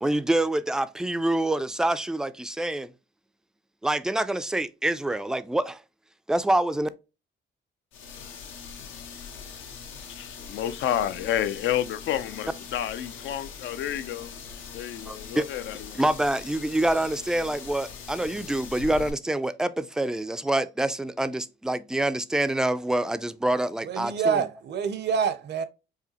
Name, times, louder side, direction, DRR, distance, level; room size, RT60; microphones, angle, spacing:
voice 1, 0.0-2.9 3.8-5.8 6.3-6.9 15.1-15.4 15.9-24.1, right 1 dB, 5° right, 0.3 m, -26 dB
sound 1, 7.9-19.1, left 6 dB, 85° left, 0.9 m, -42 dB
voice 2, 10.2-16.0, left 11 dB, 70° left, 0.4 m, -30 dB
voice 3, 23.8-25.7, right 6 dB, 60° right, 0.6 m, -26 dB
4.9 x 2.7 x 2.8 m
cardioid pair, 90°, 20 cm